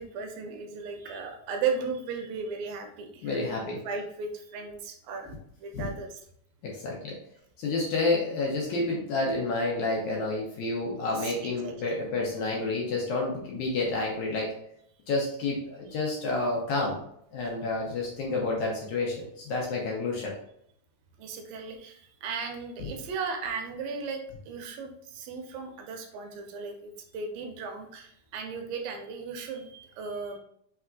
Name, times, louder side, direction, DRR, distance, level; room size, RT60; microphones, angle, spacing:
voice 1, 0.0-6.1 11.0-12.0 21.2-30.4, right 5 dB, 85° right, 3 dB, 2.3 m, -36 dB
voice 2, 3.2-3.8 5.7-5.9 6.6-7.2 7.6-14.5 15.1-17.0 17.3-20.3 22.8-22.9, left 2 dB, 70° left, -2 dB, 1.9 m, -29 dB
5.7 x 3.4 x 2.4 m, 0.70 s
omnidirectional pair, 4.1 m